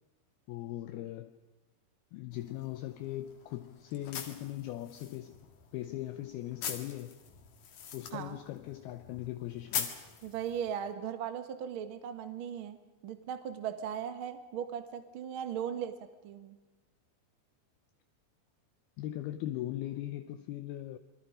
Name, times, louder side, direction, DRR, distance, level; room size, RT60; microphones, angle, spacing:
voice 1, 0.5-1.4 2.1-5.4 5.7-7.2 7.9-9.9 19.0-21.0, left 14 dB, 75° left, 2.5 m, -39 dB
sound 1, 2.3-10.9, left 7 dB, 55° left, 3.1 m, -43 dB
voice 2, 10.2-12.8 13.0-15.9 16.2-16.6, right 8 dB, 85° right, 1.1 m, -38 dB
28.0 x 23.0 x 5.1 m
omnidirectional pair, 5.0 m